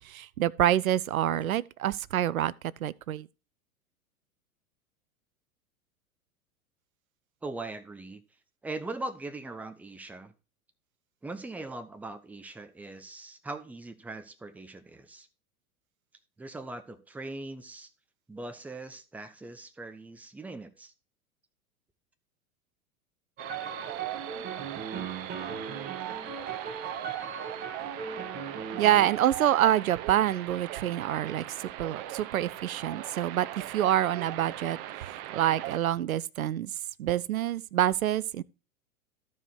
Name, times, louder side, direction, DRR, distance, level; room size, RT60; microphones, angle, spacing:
voice 1, 0.0-2.5 2.8-3.3 28.8-34.8 35.3-36.7 37.0-38.4, right 12 dB, 75° right, 0.5 m, -27 dB
voice 2, 7.4-8.2 8.6-10.3 11.2-15.3 16.4-17.9 18.3-20.9, right 2 dB, 5° right, 0.6 m, -40 dB
sound 1, 23.4-29.1, right 6 dB, 25° right, 1.5 m, -38 dB
sound 2, 23.4-35.8, right 13 dB, 40° right, 0.8 m, -40 dB
12.5 x 4.8 x 4.3 m
figure-of-eight pair, 95°, 43 cm